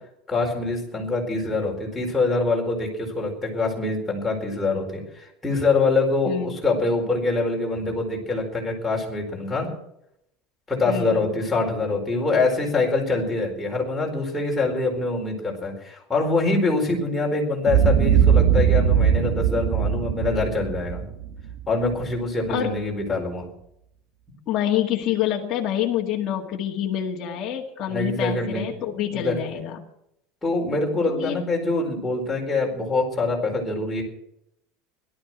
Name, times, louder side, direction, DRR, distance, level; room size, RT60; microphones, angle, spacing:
voice 1, 0.3-9.7 10.7-21.0 21.7-23.5 27.9-28.6 29.1-29.3 30.4-34.0, left 3 dB, 10° left, -1 dB, 4.5 m, -24 dB
voice 2, 10.9-11.4 22.5-22.7 24.5-29.9 31.0-31.4, left 10 dB, 35° left, -2 dB, 2.0 m, -27 dB
Boom, 17.7-21.9, right 8 dB, 55° right, 1.2 m, -20 dB
17.5 x 12.5 x 6.2 m, 0.77 s
cardioid pair, 165°, 0 cm